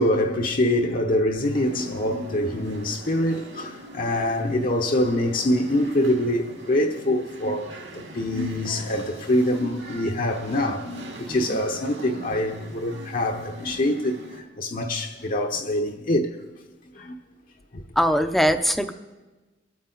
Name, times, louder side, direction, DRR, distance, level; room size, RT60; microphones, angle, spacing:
voice 1, 0.0-16.3 17.0-17.2 17.7-17.8, left 1 dB, 50° left, 0.9 m, -25 dB
sound 1, 1.4-14.4, right 1 dB, 75° right, 2.2 m, -42 dB
voice 2, 11.3-11.6 18.0-18.9, equal, ahead, 0.6 m, -22 dB
23.5 x 8.7 x 3.9 m
head